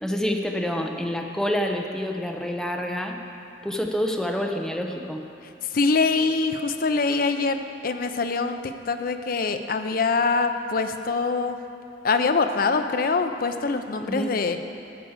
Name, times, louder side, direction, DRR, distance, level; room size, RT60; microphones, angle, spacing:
voice 1, 0.0-3.2 3.6-5.2 14.0-14.4, equal, 5° left, 2 dB, 0.7 m, -27 dB
voice 2, 5.7-11.6 12.0-14.6, left 4 dB, 50° left, 8 dB, 0.5 m, -24 dB
13.5 x 5.0 x 7.3 m, 2.7 s
head